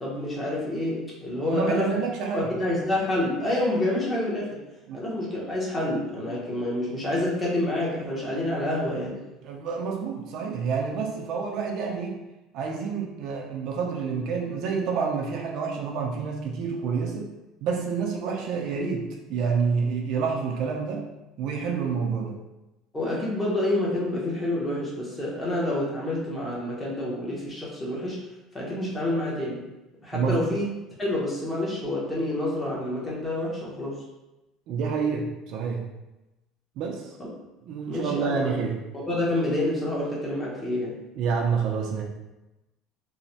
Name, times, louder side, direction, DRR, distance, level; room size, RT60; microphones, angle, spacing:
voice 1, 0.0-2.0 2.3-4.6 4.9-9.2 22.9-28.2 28.5-29.7 30.0-30.6 31.0-34.0 37.9-38.6 38.9-41.0, left 1 dB, 15° left, -5 dB, 0.7 m, -28 dB
voice 2, 1.4-2.5 4.9-5.0 9.4-12.2 12.5-17.3 17.6-21.1 21.4-22.4 30.1-30.6 34.7-35.8 36.8-37.1 37.6-38.8 41.2-42.0, right 5 dB, 55° right, 1 dB, 0.4 m, -28 dB
3.0 x 2.0 x 2.7 m, 0.99 s
cardioid pair, 150°, 0 cm